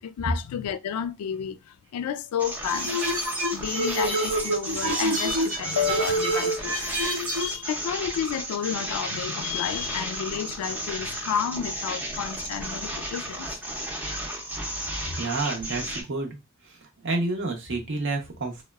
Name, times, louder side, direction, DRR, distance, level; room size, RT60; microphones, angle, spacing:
voice 1, 0.0-3.0 3.5-6.9 7.4-13.5, left 8 dB, 75° left, 0.3 m, -31 dB
sound 1, 2.4-16.0, equal, 5° right, 0.5 m, -33 dB
sound 2, 2.7-7.6, right 1 dB, 80° right, 0.9 m, -27 dB
voice 2, 15.2-16.3 17.0-18.6, right 3 dB, 60° right, 0.7 m, -29 dB
3.1 x 2.0 x 2.2 m
head